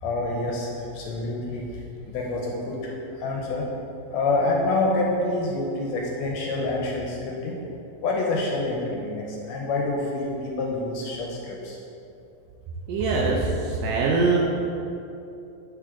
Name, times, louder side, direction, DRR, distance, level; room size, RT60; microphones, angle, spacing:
voice 1, 0.0-1.8 2.1-3.7 4.1-7.6 8.0-11.8, left 2 dB, 75° left, -2 dB, 1.7 m, -27 dB
voice 2, 12.9-14.4, right 3 dB, 80° right, -2 dB, 1.6 m, -23 dB
8.7 x 3.4 x 3.6 m, 2.7 s
omnidirectional pair, 3.5 m